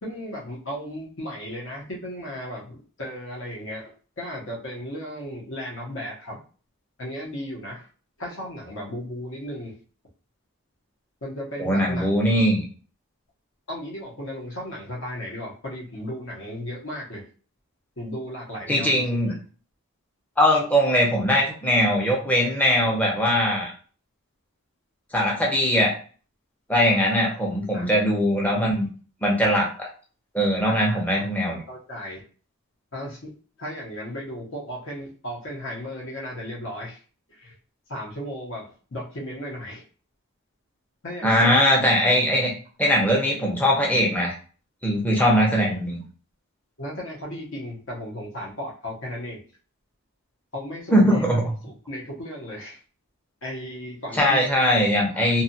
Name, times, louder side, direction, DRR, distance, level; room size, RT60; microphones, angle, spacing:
voice 1, 0.0-6.4 7.0-7.9 8.2-9.8 11.2-12.4 13.7-17.2 18.0-19.3 27.2-27.4 27.6-27.9 30.6-31.3 31.7-32.2 32.9-37.0 37.3-37.5 37.9-39.8 41.0-41.6 45.2-45.8 46.8-49.4 50.5-51.2 51.6-52.8 53.4-54.4 55.1-55.4, equal, 60° left, -3 dB, 0.9 m, -35 dB
voice 2, 11.6-12.6 18.7-19.3 20.4-23.7 25.1-25.9 26.7-28.9 29.2-29.7 30.3-31.6 41.2-42.5 42.8-44.3 44.8-46.0 50.9-51.4 54.2-55.4, equal, 5° left, -2 dB, 0.6 m, -20 dB
2.7 x 2.4 x 2.7 m, 0.40 s
head